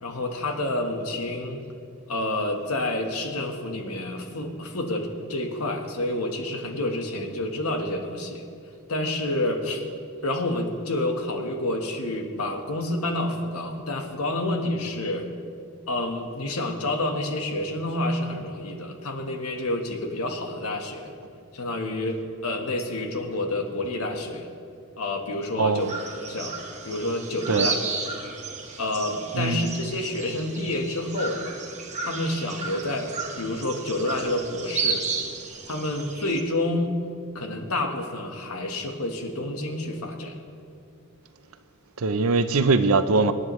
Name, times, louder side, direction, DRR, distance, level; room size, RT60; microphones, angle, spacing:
voice 1, 0.0-1.6 2.1-8.4 8.9-9.8 10.2-15.3 15.9-21.1 21.5-24.5 25.0-25.9 26.2-26.5 26.8-27.8 28.8-31.4 32.0-33.1 33.4-35.0 35.7-36.9 37.3-40.4, left 1 dB, 85° left, 4 dB, 1.4 m, -28 dB
voice 2, 25.6-25.9 27.5-27.7 29.3-29.8 42.0-43.3, right 3 dB, 70° right, 11 dB, 0.6 m, -22 dB
sound 1, 25.8-36.4, right 4 dB, 35° right, 1.4 m, -33 dB
25.0 x 9.9 x 3.2 m, 2.5 s
head